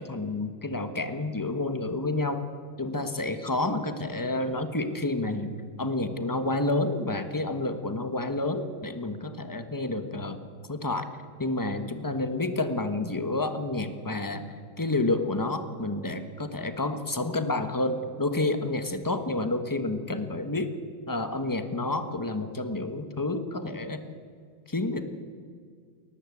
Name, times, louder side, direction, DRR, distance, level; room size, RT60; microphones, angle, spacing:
voice 1, 0.0-2.4 2.8-5.5 5.8-10.4 10.7-11.1 11.4-14.4 14.8-20.7 21.1-24.0 24.7-25.1, left 2 dB, 15° left, 9 dB, 0.8 m, -29 dB
21.5 x 18.5 x 8.5 m, 2.1 s
omnidirectional pair, 2.4 m